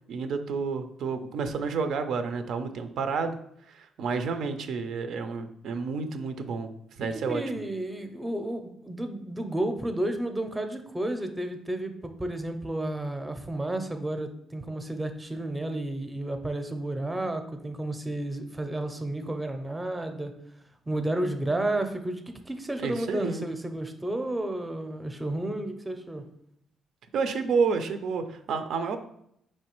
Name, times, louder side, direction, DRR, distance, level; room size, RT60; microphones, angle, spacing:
voice 1, 0.1-3.4 3.7-6.7 7.0-7.4 22.8-23.5 27.1-29.0, right 5 dB, 75° right, 8 dB, 0.4 m, -30 dB
voice 2, 7.3-20.3 20.9-26.2, right 1 dB, 15° right, 7 dB, 0.5 m, -32 dB
4.4 x 3.1 x 3.0 m, 0.73 s
cardioid pair, 90°, 0 cm